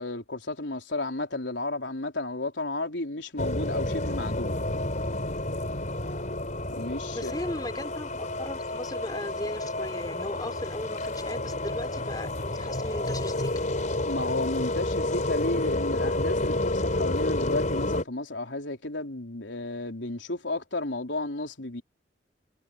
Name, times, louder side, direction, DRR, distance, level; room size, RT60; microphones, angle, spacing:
voice 1, 0.0-4.6 6.7-7.3 14.0-21.8, left 2 dB, 75° left, 4.2 m, -32 dB
sound 1, 3.4-18.0, left 1 dB, 45° left, 4.2 m, -30 dB
voice 2, 7.1-13.7, left 1 dB, 20° left, 4.1 m, -37 dB
head